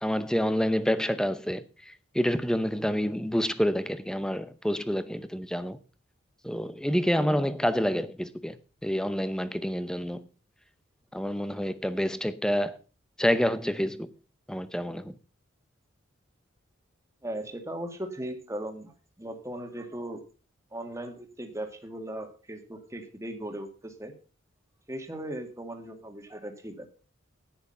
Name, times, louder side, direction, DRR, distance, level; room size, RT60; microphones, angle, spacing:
voice 1, 0.0-5.8 6.4-10.3 11.1-12.8 13.2-14.1 14.5-15.1, equal, 5° left, 0.7 m, -28 dB
voice 2, 17.2-20.2 20.7-24.1 24.9-26.9, right 1 dB, 15° right, 1.9 m, -38 dB
10.5 x 9.7 x 5.7 m
head